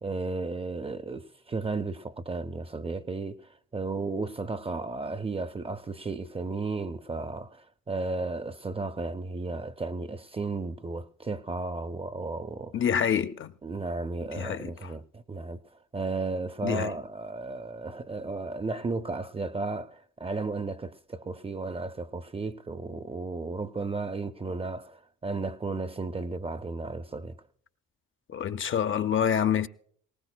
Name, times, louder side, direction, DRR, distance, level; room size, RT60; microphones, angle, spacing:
voice 1, 0.0-12.8 13.6-15.6 15.9-27.4, right 3 dB, 20° right, 0.5 m, -34 dB
voice 2, 12.7-13.5 14.4-14.7 16.6-16.9 28.3-29.7, left 8 dB, 40° left, 0.5 m, -26 dB
20.0 x 18.5 x 2.2 m
cardioid pair, 90°, 30 cm